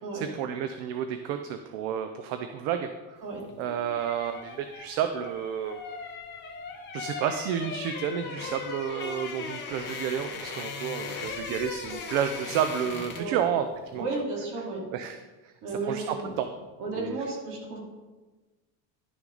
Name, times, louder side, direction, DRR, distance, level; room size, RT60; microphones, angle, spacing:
voice 1, 0.1-3.2 3.6-5.8 6.9-13.7 13.9-14.1 14.9-15.2 15.4-15.5 15.9-16.5 16.9-17.2, right 9 dB, 60° right, 8 dB, 0.6 m, -31 dB
sound 1, 3.4-13.4 13.7-13.9, left 5 dB, 25° left, 1.0 m, -38 dB
voice 2, 13.9-14.8 15.6-16.4 16.8-17.8, right 3 dB, 45° right, -2 dB, 2.6 m, -33 dB
11.5 x 6.0 x 3.9 m, 1.3 s
cardioid pair, 175°, 43 cm